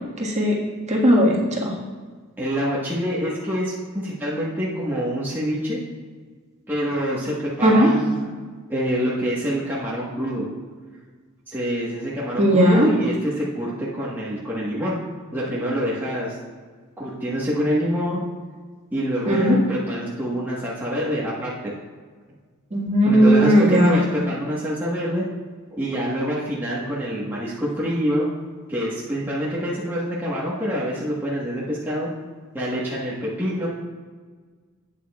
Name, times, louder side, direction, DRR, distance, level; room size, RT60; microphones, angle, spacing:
voice 1, 0.2-0.6 0.9-1.7 7.6-7.9 12.4-12.9 19.3-19.6 22.7-23.9, equal, 30° right, -3 dB, 1.7 m, -17 dB
voice 2, 2.4-5.8 6.7-8.3 8.7-10.4 11.5-15.0 15.3-16.4 17.0-18.2 18.9-21.7 23.1-25.3 25.7-28.3 28.7-32.1 32.5-33.7, equal, 10° right, -8 dB, 1.3 m, -26 dB
12.0 x 8.6 x 2.4 m, 1.5 s
head